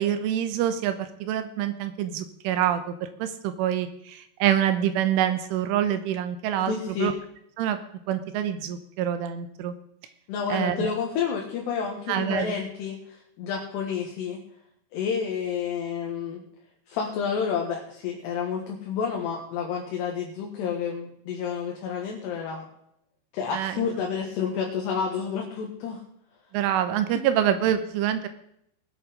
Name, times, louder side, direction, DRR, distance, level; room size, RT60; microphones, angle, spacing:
voice 1, 0.0-6.7 7.0-7.1 7.6-7.8 8.1-9.7 10.5-10.9 12.1-12.5 23.5-23.9 26.5-28.3, right 10 dB, 80° right, 10 dB, 3.3 m, -26 dB
voice 2, 6.7-7.1 10.3-14.4 14.9-16.4 16.9-22.7 23.3-26.0, left 6 dB, 65° left, 0 dB, 3.3 m, -30 dB
20.0 x 8.6 x 5.1 m, 0.73 s
omnidirectional pair, 5.9 m